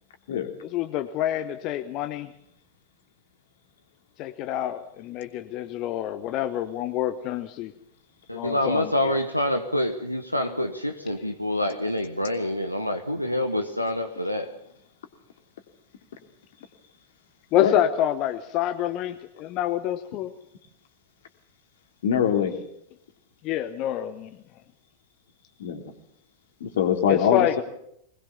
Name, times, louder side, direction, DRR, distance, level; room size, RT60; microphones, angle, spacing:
voice 1, 0.7-2.3 4.2-7.7 8.3-9.2 17.5-20.3 23.4-24.3 27.1-27.5, left 12 dB, 40° left, 9 dB, 1.1 m, -27 dB
voice 2, 8.3-14.5, left 1 dB, 90° left, 6 dB, 1.2 m, -26 dB
voice 3, 22.0-22.6 25.6-25.8 26.6-27.6, left 8 dB, 60° left, 6 dB, 2.9 m, -23 dB
22.5 x 20.0 x 7.1 m, 0.71 s
figure-of-eight pair, 90°, 0 cm